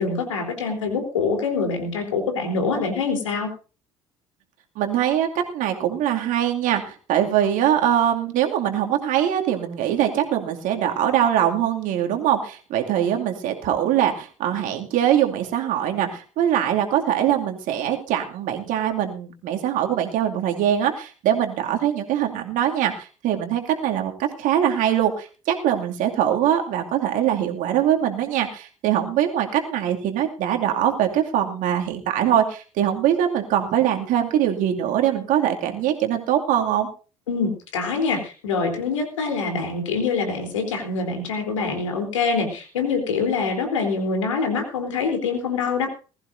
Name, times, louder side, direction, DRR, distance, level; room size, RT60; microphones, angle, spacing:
voice 1, 0.0-3.5 37.3-45.9, left 4 dB, 75° left, 4 dB, 3.6 m, -25 dB
voice 2, 4.8-36.9, right 10 dB, 55° right, 3 dB, 2.5 m, -22 dB
20.5 x 14.5 x 2.7 m, 0.35 s
figure-of-eight pair, 55°, 16 cm